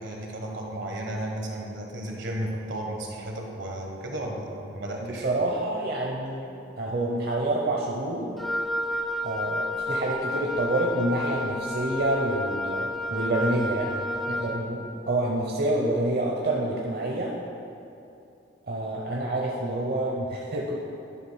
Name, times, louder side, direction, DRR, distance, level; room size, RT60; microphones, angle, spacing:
voice 1, 0.0-5.3, right 1 dB, 80° right, 0 dB, 1.3 m, -34 dB
voice 2, 5.1-8.3 9.2-17.3 18.7-20.8, right 1 dB, 55° right, -2 dB, 0.7 m, -28 dB
Wind instrument woodwind instrument, 8.4-14.6, left 1 dB, ahead, 0.4 m, -31 dB
11.0 x 3.7 x 5.6 m, 2.7 s
head